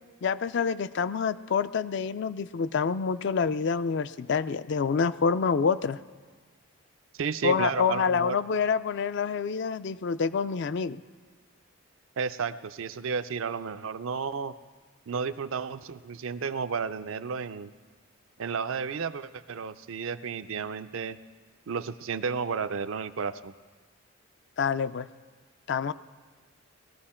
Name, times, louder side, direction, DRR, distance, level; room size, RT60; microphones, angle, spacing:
voice 1, 0.2-6.0 7.4-11.0 24.6-25.1 25.7-25.9, left 5 dB, 50° left, 14 dB, 0.4 m, -27 dB
voice 2, 7.2-8.4 12.2-14.5 15.1-17.7 18.4-21.2 21.7-23.5, right 5 dB, 65° right, 12 dB, 0.5 m, -32 dB
20.0 x 14.5 x 4.3 m, 1.5 s
head